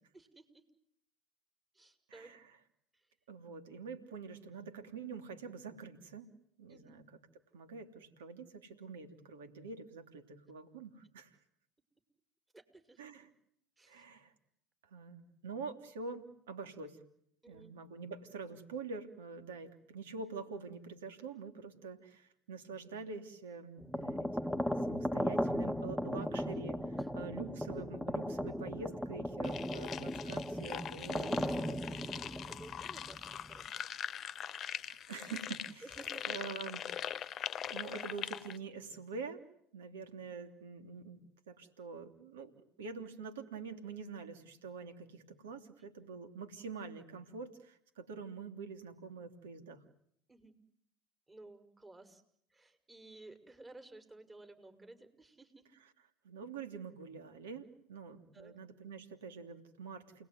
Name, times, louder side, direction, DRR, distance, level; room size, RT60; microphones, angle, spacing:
voice 1, 0.1-0.6 1.7-2.4 2.9-3.0 6.7-7.0 12.5-13.0 13.8-14.0 17.4-17.7 27.0-27.1 32.5-34.0 35.8-36.3 45.8-45.9 50.3-50.5 51.3-52.2 52.5-55.7 58.3-58.5, right 2 dB, 20° right, 8 dB, 6.0 m, -55 dB
voice 2, 2.1-2.6 3.3-6.3 6.6-7.0 7.5-11.3 13.0-13.3 13.9-14.3 14.8-17.0 17.5-32.0 34.8-35.9 36.3-36.9 37.7-39.4 39.7-41.2 41.5-42.5 42.8-49.8 56.2-60.3, right 4 dB, 80° right, 8 dB, 3.0 m, -46 dB
sound 1, 23.8-33.6, equal, ahead, 1.5 m, -37 dB
sound 2, 29.4-38.6, left 9 dB, 45° left, 1.1 m, -42 dB
29.5 x 20.5 x 9.5 m, 0.70 s
hypercardioid pair, 75°, 0 cm